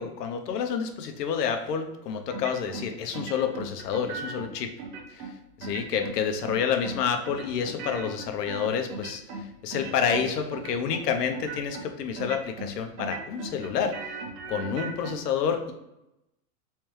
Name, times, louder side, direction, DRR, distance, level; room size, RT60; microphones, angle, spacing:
voice 1, 0.0-4.7 5.1-14.1 14.5-15.7, left 7 dB, 85° left, 6 dB, 0.8 m, -29 dB
sound 1, 2.3-2.9 3.1-4.5 4.8-5.3 5.6-6.2 6.4-7.0 7.3-9.5 9.7-10.2 10.5-11.0 11.3-11.8 12.2-12.7 13.0-15.1, right 3 dB, 75° right, 1.0 m, -37 dB
3.3 x 3.2 x 3.1 m, 0.90 s
supercardioid pair, 175°, 47 cm